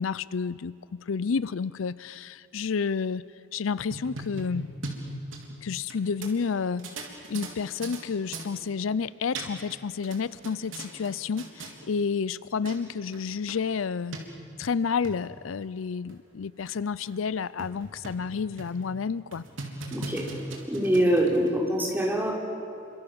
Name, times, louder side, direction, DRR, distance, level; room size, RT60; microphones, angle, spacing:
voice 1, 0.0-3.3 3.5-4.7 5.6-6.9 7.3-14.2 14.6-19.4, left 5 dB, 85° left, 18 dB, 0.5 m, -30 dB
sound 1, 3.7-6.0 6.2-6.3 6.8-8.0 8.3-8.5 9.1-9.8 10.0-11.1 11.4-11.7 12.4-12.5 12.7-12.8 13.1-13.2 13.5-13.6 14.1-14.2 14.8-15.2 15.7-15.8 16.1-16.2 16.7-16.8 17.1-17.2 17.6-18.3 18.6-18.8 19.3-21.5, right 2 dB, 80° right, 3.7 m, -38 dB
voice 2, 19.9-20.2 20.7-22.3, right 1 dB, 10° right, -2 dB, 4.3 m, -24 dB
28.5 x 25.5 x 7.0 m, 2.7 s
head